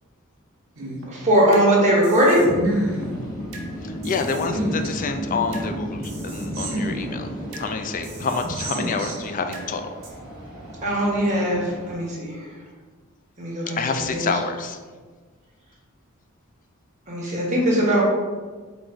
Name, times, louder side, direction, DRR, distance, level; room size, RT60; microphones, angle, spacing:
sound 1, 0.8-1.7 2.0-3.7 4.0-5.7 6.0-7.7 8.0-9.7 10.0-10.1, right 1 dB, 65° right, 0.9 m, -30 dB
voice 1, 1.1-2.4 10.8-12.4 13.4-14.3 17.1-18.0, right 1 dB, 35° right, -5 dB, 1.2 m, -20 dB
sound 2, 2.3-11.9, equal, ahead, 1.3 m, -34 dB
voice 2, 3.8-9.9 13.8-14.8, left 4 dB, 40° left, 6 dB, 0.3 m, -28 dB
3.8 x 2.6 x 4.5 m, 1.4 s
head